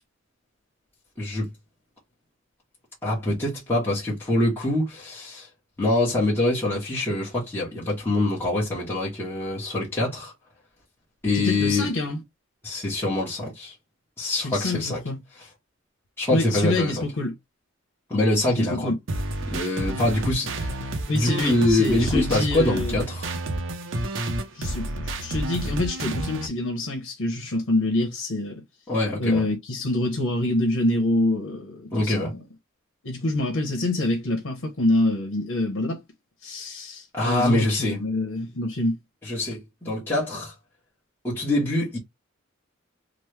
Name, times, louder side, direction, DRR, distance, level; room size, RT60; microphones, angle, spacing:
voice 1, 1.2-1.5 3.0-5.5 5.8-10.3 11.2-11.9 12.6-13.7 14.2-15.0 16.2-17.0 18.1-18.9 19.5-23.3 28.9-29.4 31.9-32.3 37.1-38.0 39.2-40.5 41.2-42.0, left 2 dB, 10° left, 0.9 m, -24 dB
voice 2, 11.3-12.2 14.4-15.2 16.3-17.3 18.6-18.9 21.1-23.0 24.5-28.6 29.2-32.4 33.0-36.0 36.4-39.0, left 1 dB, 85° left, 0.8 m, -26 dB
sound 1, 19.1-26.5, right 1 dB, 65° right, 0.6 m, -30 dB
3.0 x 2.1 x 3.1 m
head